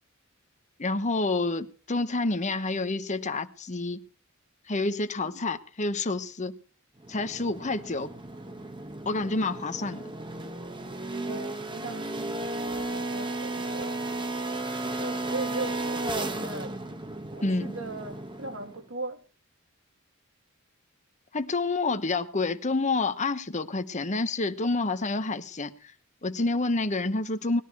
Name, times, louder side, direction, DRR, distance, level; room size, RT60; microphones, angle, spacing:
voice 1, 0.8-4.0 4.7-6.5 7.1-8.1 9.0-10.0 17.4-17.7 21.3-25.9 26.2-27.6, left 3 dB, 35° left, 1.0 m, -28 dB
sound 1, 7.0-18.8, right 2 dB, 20° right, 1.1 m, -34 dB
voice 2, 11.3-14.0 14.8-16.8 17.3-19.2, right 2 dB, 65° right, 2.2 m, -39 dB
20.0 x 13.0 x 4.7 m
head